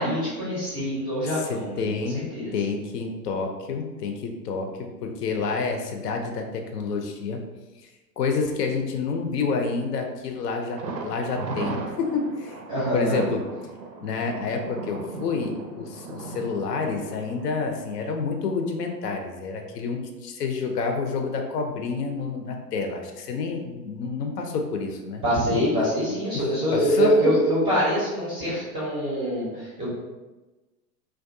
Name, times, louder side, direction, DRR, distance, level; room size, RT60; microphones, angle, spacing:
voice 1, 0.0-1.9 2.1-2.5 12.7-13.2 25.2-29.9, equal, 10° right, -8 dB, 0.5 m, -24 dB
voice 2, 1.2-7.5 8.2-12.6 12.9-13.4 14.0-25.2 25.5-25.6 26.3-27.2, left 4 dB, 70° left, 3 dB, 0.6 m, -29 dB
Thunder, 10.8-18.5 18.8-18.9 19.4-19.5, right 3 dB, 80° right, 0.6 m, -37 dB
2.3 x 2.2 x 2.5 m, 1.1 s
hypercardioid pair, 105°, 50 cm